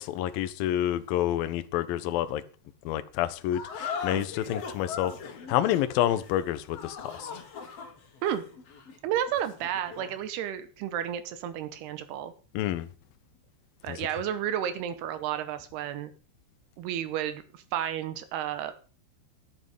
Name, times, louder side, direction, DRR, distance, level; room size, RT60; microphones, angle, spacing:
voice 1, 0.0-2.4 2.9-5.1 5.5-7.3 12.5-12.9 13.9-14.0, left 12 dB, 85° left, 2.0 m, -28 dB
sound 1, 3.5-10.2, left 6 dB, 50° left, 2.0 m, -40 dB
voice 2, 9.0-12.3 13.8-16.1 16.8-18.7, right 10 dB, 75° right, 2.7 m, -32 dB
10.0 x 9.7 x 5.3 m
omnidirectional pair, 5.3 m